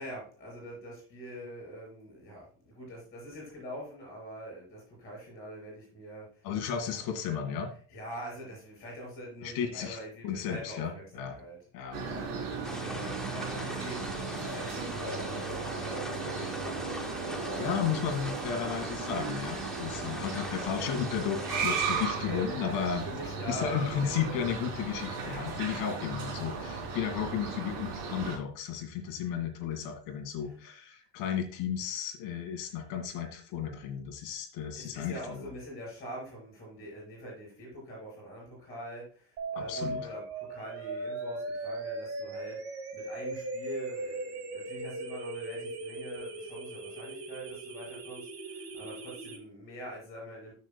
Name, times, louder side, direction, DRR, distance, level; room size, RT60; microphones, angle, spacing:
voice 1, 0.0-6.4 6.8-7.1 7.9-11.6 11.9-18.9 22.2-22.4 23.0-24.5 30.4-30.6 32.6-32.7 34.8-40.2 40.5-50.5, equal, 20° left, -3 dB, 4.6 m, -44 dB
voice 2, 6.4-7.7 9.4-11.4 11.7-12.0 13.0-13.2 17.6-23.0 23.5-35.5 39.5-40.0, left 8 dB, 60° left, 5 dB, 2.1 m, -34 dB
sound 1, 11.9-28.4, right 4 dB, 55° right, 3.6 m, -36 dB
sound 2, 12.6-22.1, left 1 dB, ahead, 0.4 m, -43 dB
sound 3, 39.4-49.4, right 2 dB, 35° right, 1.9 m, -38 dB
13.5 x 6.4 x 2.2 m, 0.42 s
cardioid pair, 175°, 40 cm